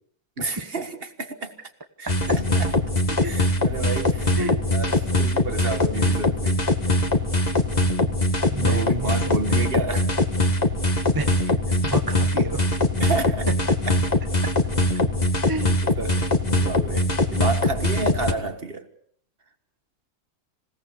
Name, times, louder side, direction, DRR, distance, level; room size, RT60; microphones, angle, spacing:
voice 1, 0.4-1.5 2.0-2.9 3.2-4.4 4.7-6.6 8.6-10.1 13.0-13.5 13.9-14.0 15.8-16.2 16.6-18.9, right 3 dB, 40° right, 9 dB, 1.8 m, -30 dB
sound 1, 2.1-18.3, left 1 dB, 30° left, 1.9 m, -22 dB
voice 2, 8.5-9.3 11.1-11.6 11.8-12.6 15.4-15.7, right 2 dB, 15° right, 7 dB, 1.0 m, -31 dB
27.0 x 17.5 x 7.0 m, 0.66 s
omnidirectional pair, 1.6 m